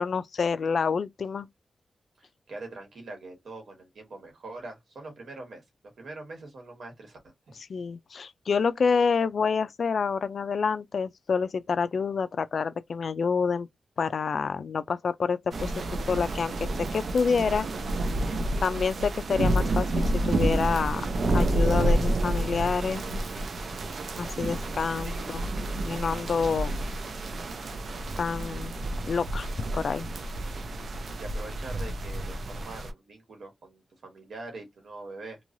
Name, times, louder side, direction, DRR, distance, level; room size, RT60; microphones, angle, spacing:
voice 1, 0.0-1.5 7.7-13.7 14.0-15.7 16.1-17.7 18.6-23.0 24.2-25.5 25.9-26.7 28.2-28.7 29.1-29.5 29.7-30.1, left 5 dB, 65° left, 0.3 m, -28 dB
voice 2, 2.2-5.6 6.0-7.6 25.0-25.3 31.2-35.4, right 2 dB, 80° right, 1.4 m, -43 dB
sound 1, 15.5-32.9, right 1 dB, 65° right, 0.5 m, -29 dB
3.0 x 2.3 x 2.5 m
wide cardioid pair, 110°, 0 cm